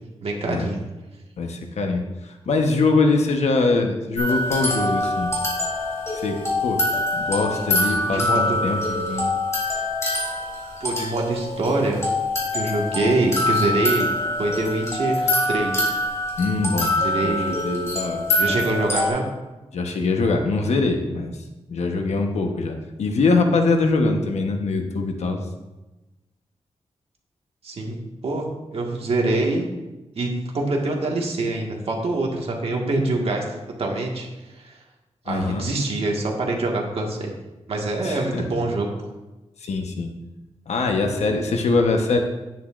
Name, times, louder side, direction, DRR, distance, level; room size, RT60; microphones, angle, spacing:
voice 1, 0.2-0.8 2.5-2.6 8.0-8.7 10.8-12.0 12.5-14.1 14.4-15.9 17.0-17.6 18.4-19.2 27.6-28.0 28.2-28.5 28.7-29.7 30.2-33.5 33.8-34.3 34.6-34.7 35.3-37.3 37.7-38.9, right 2 dB, 60° right, 0 dB, 1.8 m, -24 dB
voice 2, 1.4-5.3 6.1-6.8 7.1-9.3 16.4-16.9 17.2-18.3 19.7-21.3 21.7-25.4 35.3-35.7 38.0-38.4 39.6-40.1 40.7-42.2, left 3 dB, 80° left, 4 dB, 1.1 m, -23 dB
sound 1, 4.2-19.1, left 1 dB, 25° left, 3.4 m, -25 dB
10.5 x 9.3 x 2.6 m, 1.1 s
wide cardioid pair, 110°, 11 cm